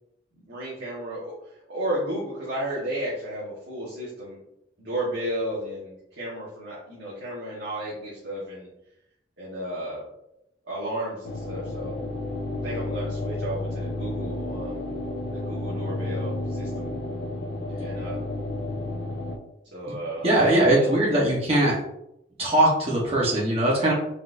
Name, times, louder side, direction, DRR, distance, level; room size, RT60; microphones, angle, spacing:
voice 1, 0.5-1.3 1.7-4.4 4.8-8.7 9.4-10.0 10.7-11.9 12.6-14.8 15.3-16.9 17.8-18.2 19.7-20.3 20.8-20.9, right 1 dB, 75° right, -8 dB, 1.4 m, -33 dB
sound 1, 11.2-19.4, left 2 dB, 65° left, 0.6 m, -31 dB
voice 2, 20.2-21.8 22.4-23.9, right 1 dB, 30° right, -5 dB, 1.1 m, -21 dB
4.2 x 3.9 x 2.6 m, 0.81 s
head